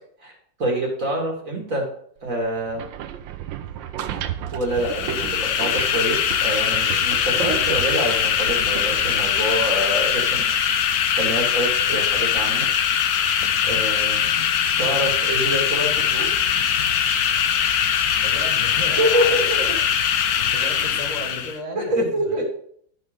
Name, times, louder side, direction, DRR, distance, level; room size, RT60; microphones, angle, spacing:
voice 1, 0.6-1.9 2.2-2.8 4.5-10.4 11.1-12.7 13.7-14.2 14.8-16.3 19.0-19.8 21.8-22.4, right 1 dB, 45° right, 0 dB, 2.3 m, -25 dB
sound 1, 2.6-10.6, right 10 dB, 85° right, 1.4 m, -34 dB
sound 2, 4.7-21.6, left 8 dB, 65° left, 1.1 m, -21 dB
voice 2, 13.6-14.0 18.2-19.7 20.3-22.4, equal, 25° left, -3 dB, 1.7 m, -35 dB
11.0 x 5.1 x 5.0 m, 0.63 s
omnidirectional pair, 2.0 m